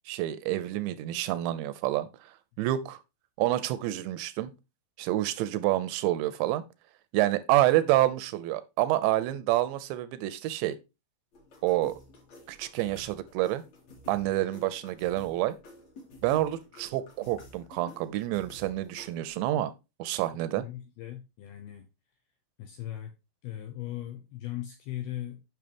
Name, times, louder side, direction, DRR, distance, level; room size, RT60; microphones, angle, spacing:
voice 1, 0.1-3.0 3.4-4.5 5.0-6.6 7.1-10.8 11.6-12.0 12.5-13.6 14.1-15.6 16.2-19.7 20.0-20.7, right 15 dB, 80° right, 2.7 m, -28 dB
sound 1, 11.3-19.3, left 1 dB, 40° left, 3.2 m, -52 dB
voice 2, 20.6-21.9 22.6-23.1 23.4-25.4, left 13 dB, 80° left, 2.3 m, -38 dB
8.8 x 6.3 x 3.4 m
omnidirectional pair, 5.5 m